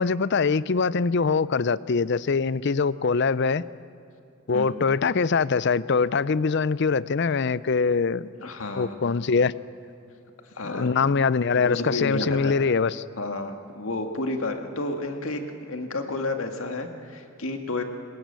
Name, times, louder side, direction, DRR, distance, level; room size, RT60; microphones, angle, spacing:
voice 1, 0.0-3.6 4.5-8.3 8.8-9.5 10.6-13.0, left 5 dB, 55° left, 18 dB, 0.5 m, -23 dB
voice 2, 4.5-4.9 8.4-9.0 10.6-10.9 11.6-12.5 13.2-17.8, left 2 dB, 70° left, 5 dB, 2.0 m, -31 dB
23.0 x 20.5 x 8.2 m, 2.7 s
head